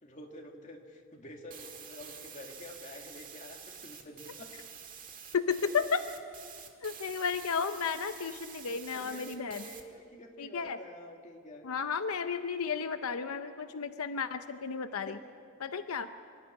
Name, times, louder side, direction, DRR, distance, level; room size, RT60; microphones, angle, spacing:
voice 1, 0.0-4.5 8.5-8.6 8.9-11.7 15.1-15.2, left 1 dB, 35° left, 1 dB, 2.3 m, -48 dB
sound 1, 1.5-9.8, right 7 dB, 40° right, 1.8 m, -48 dB
voice 2, 5.3-6.0 6.8-9.6 10.4-10.8 11.6-15.1 15.6-16.1, left 6 dB, 85° left, 9 dB, 0.7 m, -33 dB
25.5 x 13.0 x 9.7 m, 2.3 s
head